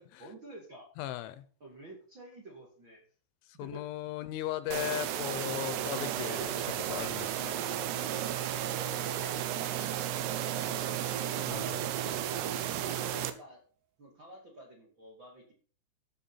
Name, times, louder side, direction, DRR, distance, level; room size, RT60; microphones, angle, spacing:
voice 1, 0.2-0.9 1.6-3.0 3.5-3.9 5.9-6.1 8.5-9.4 10.5-13.6 14.0-15.5, right 1 dB, 40° right, 1.8 m, -50 dB
voice 2, 1.0-1.4 3.5-7.6 10.7-10.9 11.5-11.8, left 14 dB, 80° left, 3.0 m, -38 dB
sound 1, 4.7-12.5, right 7 dB, 60° right, 2.9 m, -55 dB
sound 2, 4.7-13.3, right 11 dB, 75° right, 2.6 m, -33 dB
13.0 x 8.3 x 4.2 m
omnidirectional pair, 5.8 m